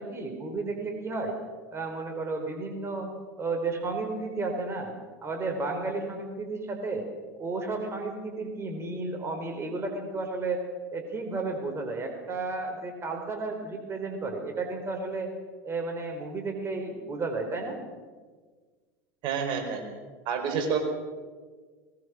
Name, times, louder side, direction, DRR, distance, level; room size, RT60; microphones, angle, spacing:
voice 1, 0.0-1.3 1.7-3.1 3.4-4.9 5.2-7.1 7.4-10.6 10.9-15.3 15.6-17.8, right 3 dB, 25° right, 3 dB, 4.3 m, -32 dB
voice 2, 19.2-19.8 20.2-20.8, right 6 dB, 55° right, 4 dB, 4.6 m, -28 dB
21.0 x 20.0 x 6.3 m, 1.5 s
hypercardioid pair, 90°, 10 cm